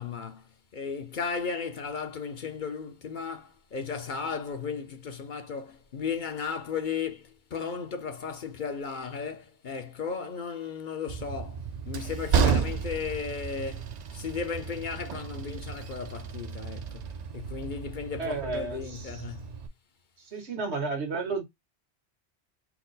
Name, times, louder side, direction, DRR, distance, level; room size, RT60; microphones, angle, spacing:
voice 1, 0.0-19.6, left 6 dB, 55° left, 0.8 m, -35 dB
Train, 11.1-19.7, right 6 dB, 55° right, 0.5 m, -32 dB
voice 2, 18.2-19.1 20.2-21.4, right 3 dB, 90° right, 1.6 m, -32 dB
4.4 x 2.0 x 3.9 m
omnidirectional pair, 1.1 m